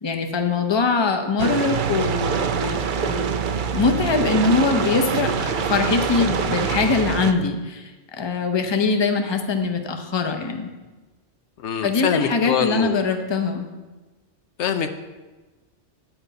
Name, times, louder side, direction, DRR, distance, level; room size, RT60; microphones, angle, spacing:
voice 1, 0.0-3.2 3.7-10.7 11.8-13.7, left 4 dB, 25° left, 5 dB, 0.8 m, -22 dB
sound 1, 1.4-7.3, right 6 dB, 55° right, 0.6 m, -25 dB
voice 2, 11.6-13.0 14.6-14.9, left 8 dB, 75° left, 8 dB, 0.9 m, -24 dB
9.1 x 5.2 x 7.9 m, 1.2 s
omnidirectional pair, 1.2 m